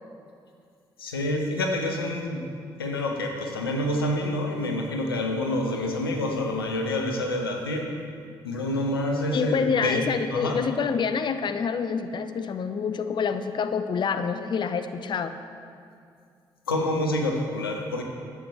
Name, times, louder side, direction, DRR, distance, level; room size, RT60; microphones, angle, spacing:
voice 1, 1.0-2.5 2.8-7.9 8.4-10.0 10.3-10.6 16.7-18.0, left 1 dB, 90° left, 2 dB, 0.6 m, -27 dB
voice 2, 9.3-15.3, left 6 dB, 40° left, 9 dB, 0.5 m, -27 dB
10.5 x 7.5 x 3.4 m, 2.4 s
figure-of-eight pair, 40°, 12 cm